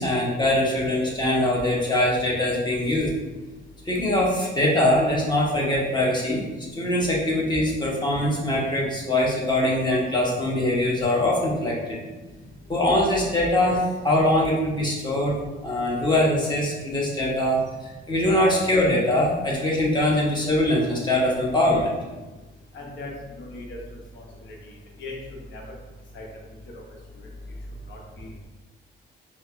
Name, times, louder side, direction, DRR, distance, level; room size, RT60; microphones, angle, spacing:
voice 1, 0.0-3.1 3.9-6.4 6.8-12.0 12.7-15.4 15.6-21.9, left 1 dB, 20° left, -3 dB, 1.1 m, -22 dB
voice 2, 22.7-23.8 24.1-24.2 25.0-25.2 25.5-25.6 26.1-26.2 27.9-28.3, left 2 dB, 70° left, -1 dB, 0.9 m, -38 dB
5.1 x 2.1 x 2.5 m, 1.2 s
cardioid pair, 90°, 20 cm